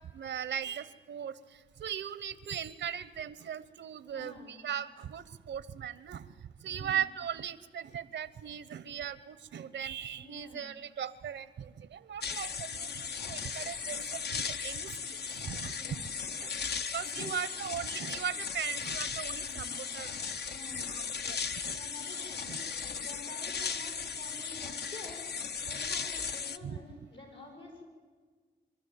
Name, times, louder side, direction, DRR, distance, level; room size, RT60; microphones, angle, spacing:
voice 1, 0.0-1.4 1.8-6.3 6.6-15.0 15.4-15.7 16.4-16.5 16.9-20.1 20.9-21.4 21.6-21.8 22.5-22.6 26.6-26.8, right 9 dB, 80° right, 16 dB, 0.9 m, -38 dB
voice 2, 4.0-4.6 6.6-7.0 10.1-10.7 15.7-16.1 17.0-17.6 19.3-19.8 20.5-21.0 21.7-22.6 23.0-25.2 25.6-27.9, left 2 dB, 85° left, -1 dB, 6.8 m, -49 dB
sound 1, 12.2-26.6, left 6 dB, 65° left, 0.8 m, -37 dB
24.5 x 13.0 x 9.3 m, 1.5 s
cardioid pair, 55°, 18 cm